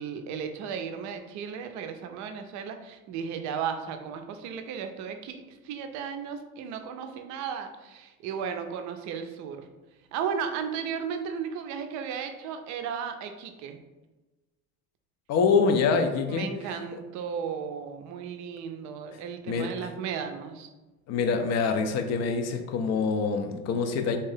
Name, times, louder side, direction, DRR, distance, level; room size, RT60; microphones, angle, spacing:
voice 1, 0.0-9.7 10.1-13.8 16.3-20.7, right 7 dB, 45° right, 6 dB, 0.5 m, -35 dB
voice 2, 15.3-16.5 19.5-19.9 21.1-24.2, left 5 dB, 40° left, 6 dB, 0.5 m, -25 dB
3.4 x 2.8 x 3.3 m, 1.1 s
figure-of-eight pair, 55°, 43 cm